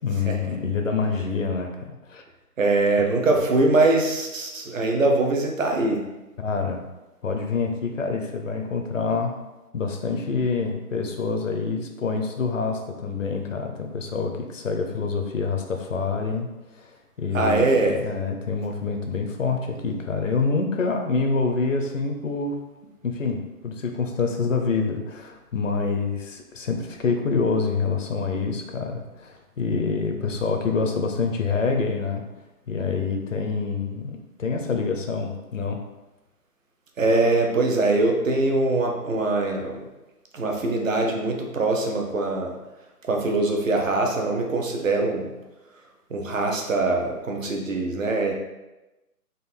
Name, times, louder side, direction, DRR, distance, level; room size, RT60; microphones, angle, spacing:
voice 1, 0.0-2.2 6.4-6.8 7.2-9.3 9.7-22.6 23.0-32.2 32.7-35.8, left 4 dB, 55° left, 4 dB, 0.7 m, -26 dB
voice 2, 2.6-6.0 17.3-18.0 37.0-39.8 40.3-42.5 43.1-45.3 46.1-48.3, right 2 dB, 55° right, 1 dB, 0.9 m, -22 dB
3.9 x 2.5 x 4.2 m, 1.0 s
figure-of-eight pair, 150°, 46 cm